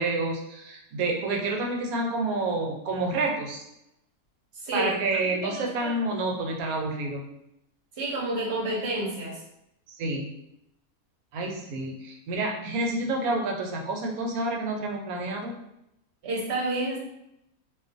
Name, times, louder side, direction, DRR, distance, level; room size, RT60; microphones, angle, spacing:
voice 1, 0.0-3.6 4.7-7.2 9.9-10.3 11.3-15.6, right 2 dB, 80° right, 1 dB, 1.0 m, -29 dB
voice 2, 4.6-5.0 5.3-5.9 8.0-9.4 16.2-17.0, right 2 dB, 55° right, -3 dB, 0.9 m, -30 dB
2.5 x 2.3 x 2.5 m, 0.82 s
omnidirectional pair, 1.5 m